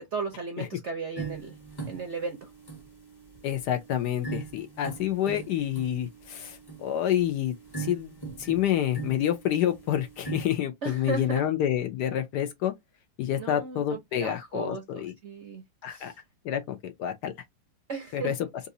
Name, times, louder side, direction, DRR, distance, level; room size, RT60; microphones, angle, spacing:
voice 1, 0.0-1.6 1.9-2.5 10.8-11.5 13.4-16.2 17.9-18.4, right 4 dB, 60° right, 0.7 m, -36 dB
sound 1, 1.2-10.5, right 5 dB, 20° left, 0.8 m, -41 dB
voice 2, 3.4-12.7 13.2-15.1 15.8-16.1 16.4-17.3 18.1-18.3, left 11 dB, 70° left, 1.1 m, -28 dB
4.0 x 2.5 x 2.6 m
omnidirectional pair, 2.1 m